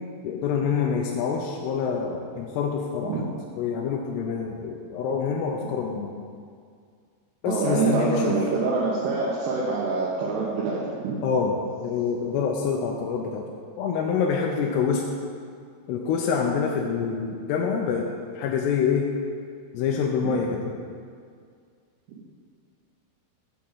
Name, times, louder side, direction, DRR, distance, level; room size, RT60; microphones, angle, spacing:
voice 1, 0.2-3.3 3.6-6.1 7.4-8.3 11.2-11.6 11.8-13.5 13.8-15.0 15.9-18.1 18.3-19.1 19.7-20.7, left 6 dB, 80° left, 0 dB, 2.7 m, -26 dB
voice 2, 7.5-11.2, right 4 dB, 80° right, -6 dB, 3.2 m, -25 dB
8.4 x 5.1 x 7.3 m, 2.1 s
omnidirectional pair, 4.9 m